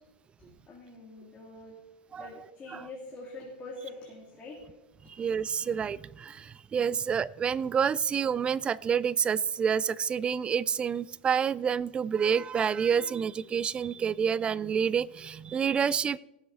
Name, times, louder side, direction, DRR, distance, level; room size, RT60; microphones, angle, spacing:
voice 1, 0.7-1.8 2.1-4.6, left 2 dB, 20° left, -4 dB, 2.9 m, -44 dB
voice 2, 5.1-16.2, right 7 dB, 20° right, 21 dB, 0.3 m, -28 dB
18.5 x 7.8 x 4.2 m, 1.0 s
hypercardioid pair, 120°, 5 cm